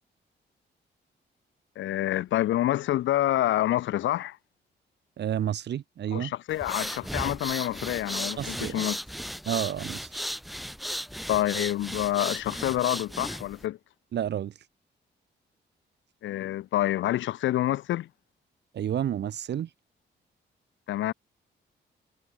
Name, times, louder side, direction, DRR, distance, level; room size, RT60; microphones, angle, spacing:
voice 1, 1.8-4.4 6.1-9.0 11.3-13.8 16.2-18.1 20.9-21.1, left 14 dB, 90° left, 0.8 m, -27 dB
voice 2, 5.2-6.3 8.4-8.9 9.5-10.1 14.1-14.5 18.7-19.7, right 10 dB, 65° right, 0.8 m, -30 dB
sound 1, 6.5-13.6, equal, ahead, 0.8 m, -35 dB
cardioid pair, 80°, 19 cm